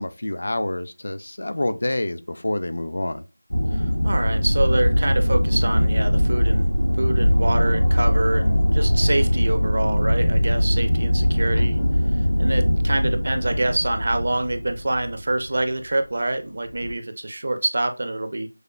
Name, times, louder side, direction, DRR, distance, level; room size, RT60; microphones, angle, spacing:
voice 1, 0.0-3.2 11.6-11.9, left 1 dB, 60° left, 0.4 m, -27 dB
sound 1, 3.5-15.6 16.7-16.9, equal, 80° left, 0.8 m, -21 dB
voice 2, 3.7-6.7 7.0-11.8 12.4-18.5, right 2 dB, 50° right, 0.6 m, -26 dB
6.3 x 2.2 x 2.4 m
figure-of-eight pair, 170°, 0 cm